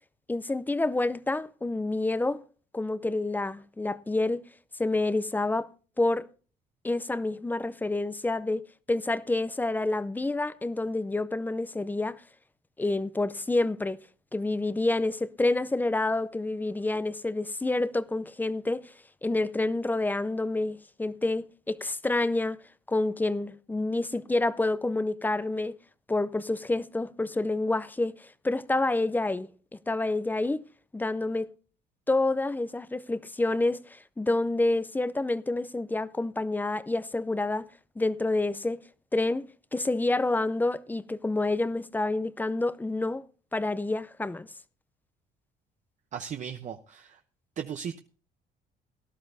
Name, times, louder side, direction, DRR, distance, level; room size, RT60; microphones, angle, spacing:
voice 1, 0.3-2.4 2.7-4.4 4.8-5.7 6.0-6.3 6.8-12.2 12.8-14.0 14.3-18.9 19.2-22.6 22.9-25.8 26.1-29.5 29.9-30.6 30.9-31.5 32.1-37.7 38.0-38.8 39.1-43.2 43.5-44.5, left 2 dB, 10° left, 0.5 m, -28 dB
voice 2, 46.1-47.2 47.6-48.0, right 8 dB, 45° right, 0.8 m, -37 dB
18.0 x 12.0 x 2.7 m
cardioid pair, 110°, 17 cm